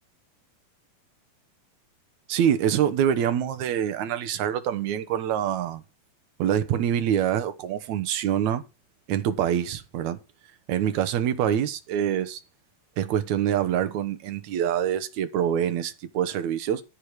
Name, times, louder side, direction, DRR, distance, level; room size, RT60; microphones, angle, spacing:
voice 1, 2.3-5.8 6.4-8.6 9.1-10.2 10.7-12.4 13.0-16.8, right 9 dB, 65° right, 2.3 m, -25 dB
10.0 x 8.8 x 4.8 m
omnidirectional pair, 3.8 m